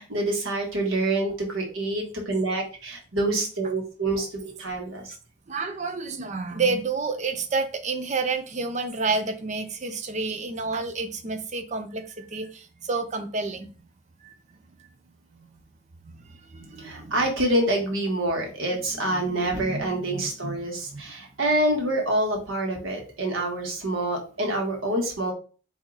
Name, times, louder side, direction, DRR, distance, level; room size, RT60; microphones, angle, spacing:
voice 1, 0.0-5.1 16.8-25.3, right 1 dB, 90° right, 1 dB, 1.5 m, -26 dB
voice 2, 5.5-13.7 14.2-14.4 14.8-14.9 15.3-15.6 16.0-17.3 18.7-21.0, right 4 dB, 35° right, 8 dB, 0.5 m, -30 dB
4.4 x 2.7 x 3.9 m, 0.37 s
head